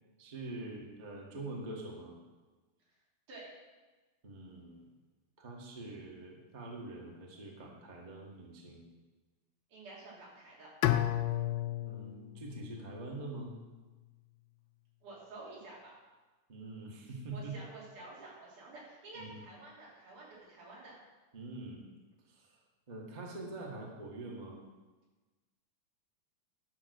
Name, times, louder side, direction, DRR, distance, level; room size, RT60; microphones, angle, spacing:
voice 1, 0.2-2.1 4.2-4.8 5.4-8.8 11.4-11.5 11.8-13.5 16.5-17.6 19.1-19.4 21.3-21.8 22.3-22.5 22.9-24.6, right 2 dB, 25° right, -1 dB, 1.0 m, -44 dB
voice 2, 9.7-10.7 15.0-16.0 17.3-20.9, right 2 dB, 85° right, -6 dB, 4.4 m, -50 dB
Bowed string instrument, 10.8-13.8, left 13 dB, 85° left, 1.4 m, -34 dB
11.0 x 5.7 x 6.5 m, 1.2 s
omnidirectional pair, 3.5 m